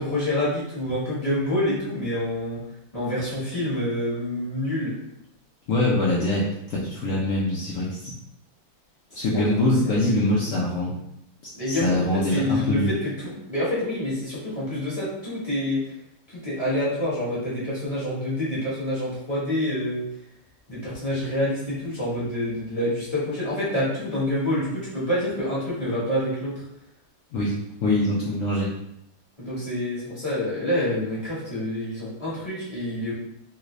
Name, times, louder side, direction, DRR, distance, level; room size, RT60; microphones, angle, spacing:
voice 1, 0.0-2.6 2.9-4.9 9.1-9.2 9.6-10.3 11.5-15.9 16.3-20.1 20.7-26.6 29.4-33.1, left 1 dB, 25° left, -9 dB, 1.0 m, -27 dB
voice 2, 5.7-6.4 6.7-8.1 9.1-10.9 11.7-12.9 27.3-27.6 27.8-28.7, left 1 dB, 70° left, -5 dB, 0.7 m, -23 dB
3.4 x 2.5 x 3.0 m, 0.79 s
omnidirectional pair, 2.0 m